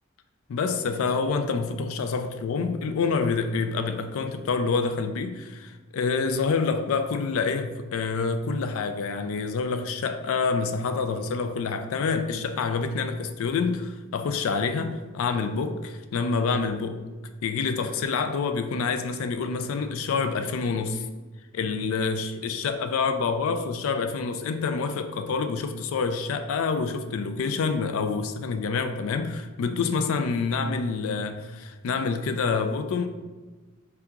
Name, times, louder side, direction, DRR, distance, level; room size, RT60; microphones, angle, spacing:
voice 1, 0.5-17.0 17.4-21.0 21.5-33.1, left 4 dB, 65° left, 0.3 m, -27 dB
3.4 x 2.9 x 3.6 m
head